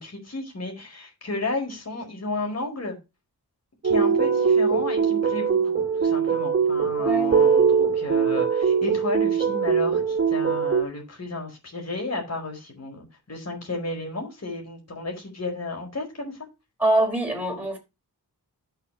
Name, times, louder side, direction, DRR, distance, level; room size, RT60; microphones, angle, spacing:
voice 1, 0.0-3.0 3.8-16.4, left 2 dB, 40° left, 4.8 m, -33 dB
sound 1, 3.8-10.8, right 6 dB, 35° right, 2.6 m, -21 dB
voice 2, 7.0-7.4 16.8-17.8, right 1 dB, 5° right, 4.5 m, -24 dB
15.5 x 6.9 x 2.9 m
wide cardioid pair, 140°, 38 cm